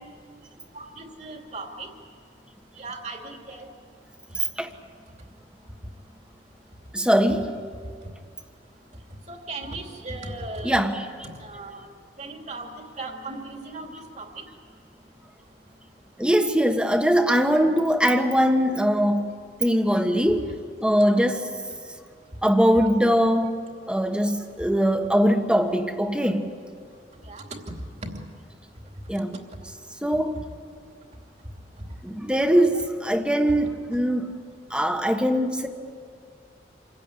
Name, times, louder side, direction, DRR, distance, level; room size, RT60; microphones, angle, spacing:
voice 1, 0.7-1.9 2.8-3.7 9.3-10.8 11.3-11.9 12.2-12.7 13.0-14.4 27.3-27.4 28.0-28.1, right 2 dB, 40° right, 2.7 m, -37 dB
voice 2, 4.3-4.7 6.9-7.5 10.6-11.1 16.2-20.5 20.8-21.5 22.4-23.6 23.9-26.5 29.1-29.4 30.0-30.4 32.0-34.3 34.7-35.7, equal, 5° right, 1.4 m, -22 dB
27.0 x 16.0 x 9.9 m
head